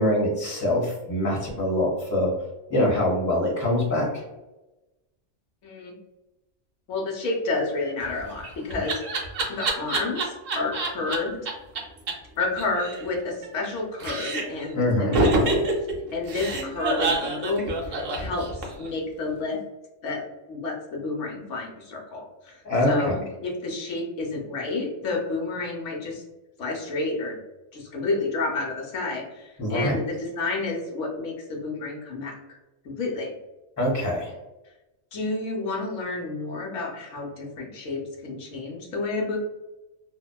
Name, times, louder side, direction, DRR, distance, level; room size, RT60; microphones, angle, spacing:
voice 1, 0.0-2.3 2.7-4.1 14.7-15.2 22.6-22.9 29.6-29.9 33.8-34.3, left 1 dB, 15° left, -4 dB, 0.9 m, -24 dB
voice 2, 5.6-6.0 6.9-9.0 9.5-11.5 12.4-15.8 16.1-19.6 20.0-22.6 22.9-26.2 26.6-27.4 27.7-32.6 32.8-33.3 35.1-39.4, left 3 dB, 80° left, 0 dB, 1.0 m, -30 dB
Laughter, 8.1-11.2 11.5-11.6 11.8-11.9 12.1-12.2 12.4-13.7 14.0-14.6 15.1-18.9, right 2 dB, 60° right, 0.7 m, -26 dB
2.8 x 2.1 x 2.2 m, 1.0 s
omnidirectional pair, 1.2 m